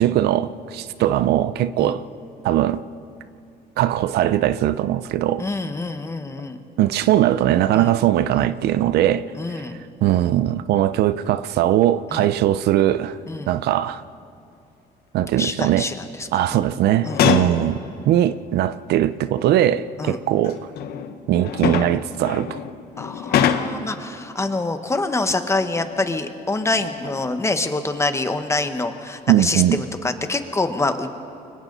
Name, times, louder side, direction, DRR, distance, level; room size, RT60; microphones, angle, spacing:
voice 1, 0.0-2.0 2.4-2.8 3.8-5.5 6.8-9.2 9.5-9.6 10.0-13.2 13.5-14.0 15.1-15.9 16.3-17.8 18.1-20.6 21.3-22.6 29.3-29.8, right 12 dB, 75° right, 0.6 m, -20 dB
voice 2, 5.4-6.6 7.7-7.9 8.3-8.5 9.3-9.8 12.1-12.3 13.3-13.5 15.4-16.6 17.0-17.2 20.0-20.2 23.0-31.1, left 2 dB, 15° left, 1.4 m, -26 dB
sound 1, 16.9-17.6 18.8-18.9 20.1-23.9 25.8-26.2 26.6-27.4 27.9-28.1, left 8 dB, 70° left, 1.3 m, -25 dB
29.5 x 24.0 x 4.1 m
cardioid pair, 110°, 17 cm